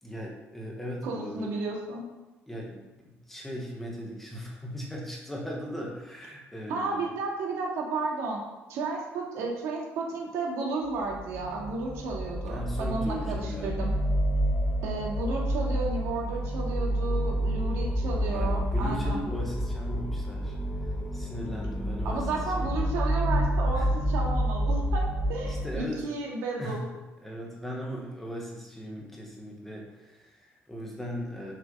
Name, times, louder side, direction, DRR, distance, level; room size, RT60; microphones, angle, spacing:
voice 1, 0.0-1.5 2.5-7.1 12.5-13.7 17.1-17.4 18.3-20.6 21.1-22.7 23.7-23.9 25.4-26.2 26.6-26.8 27.2-31.5, equal, 5° left, -2 dB, 1.3 m, -38 dB
voice 2, 1.0-2.1 6.7-8.4 8.7-13.9 14.8-19.2 22.0-26.9, right 3 dB, 90° right, -2 dB, 2.2 m, -33 dB
sound 1, 10.9-25.7, equal, 25° left, 1.1 m, -29 dB
6.7 x 6.0 x 5.5 m, 1.1 s
cardioid pair, 180°, 5 cm